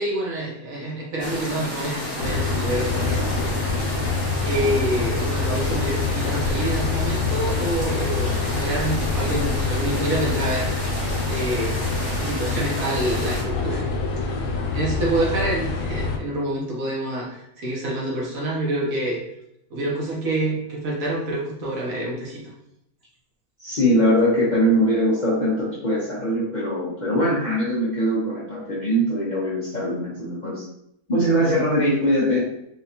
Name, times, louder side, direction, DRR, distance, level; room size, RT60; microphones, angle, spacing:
voice 1, 0.0-3.8 4.4-10.7 11.3-11.7 12.1-13.8 14.2-14.4 14.7-19.2 19.7-22.4 31.4-31.7, right 1 dB, 65° right, -4 dB, 1.3 m, -27 dB
sound 1, 1.2-13.4, left 1 dB, 20° left, 1.2 m, -31 dB
sound 2, 2.2-16.2, left 3 dB, 85° left, 1.2 m, -26 dB
voice 2, 23.6-30.6 31.1-32.4, equal, 40° left, -8 dB, 0.7 m, -21 dB
4.1 x 2.4 x 2.8 m, 0.77 s
omnidirectional pair, 1.6 m